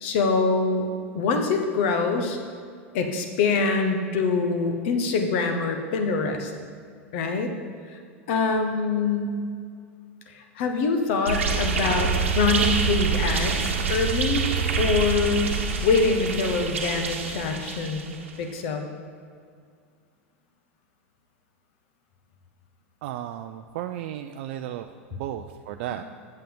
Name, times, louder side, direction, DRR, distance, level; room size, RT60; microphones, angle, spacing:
voice 1, 0.0-2.4 2.9-6.5 7.1-7.5 7.9-8.0 8.3-9.4 10.3-14.4 14.8-15.6 15.8-18.1 18.4-18.8, left 4 dB, 60° left, 5 dB, 1.1 m, -24 dB
sound 1, 11.3-18.3, right 5 dB, 75° right, 1.0 m, -26 dB
voice 2, 23.0-26.0, right 12 dB, 60° right, 7 dB, 0.4 m, -34 dB
8.4 x 7.6 x 3.8 m, 2.2 s
figure-of-eight pair, 85°, 7 cm